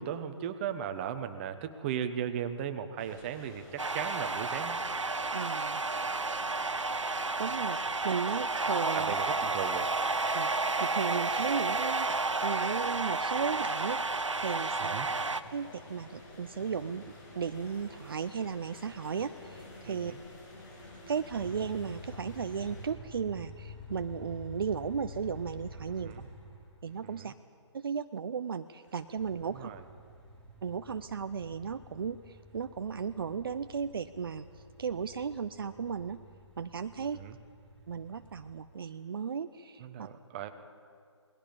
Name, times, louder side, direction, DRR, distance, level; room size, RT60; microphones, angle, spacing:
voice 1, 0.0-4.8 8.9-9.9 14.9-15.1 19.9-20.2 26.0-26.3 27.1-27.3 29.5-29.8 37.0-37.4 39.8-40.5, right 9 dB, 25° right, 8 dB, 1.2 m, -37 dB
sound 1, 3.0-22.9, left 1 dB, 45° left, 7.9 m, -51 dB
sound 2, 3.8-15.4, right 3 dB, 85° right, 1.1 m, -31 dB
voice 2, 5.3-5.8 7.4-9.1 10.3-15.0 15.5-20.1 21.1-26.1 26.8-27.3 27.7-29.7 30.6-36.2 36.6-37.2 37.9-40.1, right 6 dB, 50° right, 10 dB, 0.7 m, -35 dB
sound 3, 20.6-27.0 28.8-38.8, left 2 dB, 5° left, 4.3 m, -50 dB
28.0 x 20.5 x 5.3 m, 2.2 s
figure-of-eight pair, 145°, 15 cm